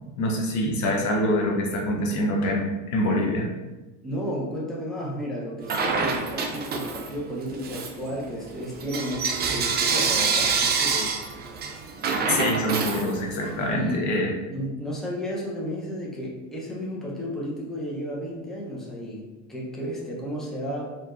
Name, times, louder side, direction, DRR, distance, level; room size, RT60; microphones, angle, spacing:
voice 1, 0.2-3.5 12.3-14.3, left 1 dB, 50° left, 0 dB, 0.8 m, -25 dB
voice 2, 4.0-11.2 13.7-14.1 14.5-20.9, equal, ahead, -5 dB, 0.8 m, -33 dB
Bell / Coin (dropping), 5.7-7.2 7.6-13.6, right 5 dB, 25° right, 0.4 m, -26 dB
4.3 x 3.0 x 2.5 m, 1.1 s
supercardioid pair, 110°, 38 cm